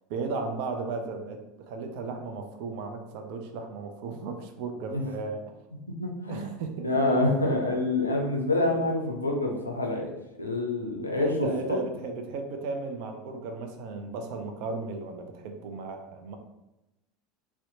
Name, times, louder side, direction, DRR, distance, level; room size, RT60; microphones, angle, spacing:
voice 1, 0.1-1.4 1.7-5.4 6.3-7.0 11.2-16.4, right 3 dB, 55° right, 5 dB, 0.4 m, -35 dB
voice 2, 5.9-6.5 6.8-10.1 10.4-11.3, left 2 dB, 85° left, 1 dB, 0.3 m, -27 dB
2.7 x 2.1 x 2.6 m, 0.95 s
figure-of-eight pair, 75°, 0 cm